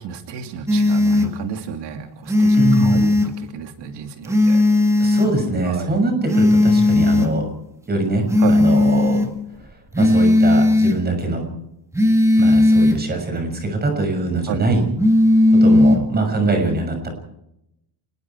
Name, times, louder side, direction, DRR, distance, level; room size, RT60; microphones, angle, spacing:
voice 1, 0.0-4.7 5.6-5.9 8.4-8.6 14.5-14.7, right 8 dB, 80° right, 5 dB, 2.8 m, -31 dB
sound 1, 0.7-1.3 2.3-3.3 4.3-5.3 6.3-7.3 8.3-9.3 9.9-11.0 11.9-13.0 15.0-16.0, left 2 dB, 5° right, 2.0 m, -15 dB
voice 2, 2.6-3.0 5.0-7.4 7.9-9.2 10.0-11.4 12.4-14.8 15.6-17.1, right 2 dB, 25° right, 4 dB, 6.6 m, -22 dB
28.5 x 20.0 x 4.7 m, 0.81 s
cardioid pair, 175°, 41 cm